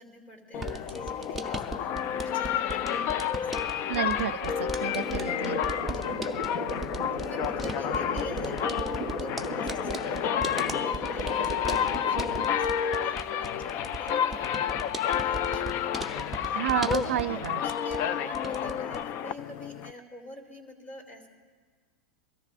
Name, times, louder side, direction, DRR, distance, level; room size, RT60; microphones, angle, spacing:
voice 1, 0.0-3.8 5.0-6.2 7.2-16.8 17.0-21.3, left 1 dB, 25° left, 1 dB, 2.9 m, -46 dB
sound 1, 0.5-19.9, left 9 dB, 40° left, 0.4 m, -30 dB
sound 2, 0.5-18.1 18.3-19.0, right 2 dB, ahead, 0.7 m, -39 dB
voice 2, 3.9-5.6 16.5-17.6, right 10 dB, 85° right, 13 dB, 0.5 m, -30 dB
sound 3, 4.9-12.4, left 2 dB, 60° left, 2.2 m, -35 dB
23.5 x 13.5 x 2.5 m, 1.5 s
supercardioid pair, 130°, 7 cm